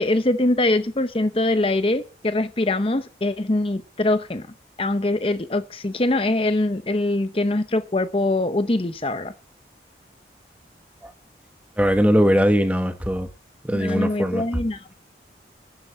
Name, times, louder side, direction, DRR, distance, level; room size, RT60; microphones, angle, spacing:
voice 1, 0.0-4.4 4.8-9.3 13.7-14.9, left 2 dB, 30° left, 0.7 m, -23 dB
voice 2, 11.8-13.3 13.6-14.5, equal, 10° right, 1.2 m, -20 dB
12.0 x 7.8 x 7.1 m
head